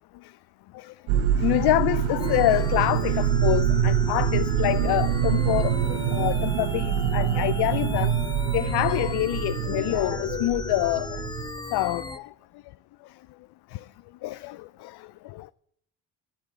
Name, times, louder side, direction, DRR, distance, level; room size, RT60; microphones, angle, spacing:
voice 1, 0.7-8.1 8.5-11.2 11.7-12.3 13.7-13.8 14.2-15.5, left 17 dB, 65° left, 0.5 m, -26 dB
sound 1, 1.1-11.5, right 9 dB, 85° right, 1.2 m, -25 dB
sound 2, 2.2-12.2, left 2 dB, 10° left, 0.7 m, -37 dB
10.0 x 8.7 x 9.3 m
supercardioid pair, 65°, 43 cm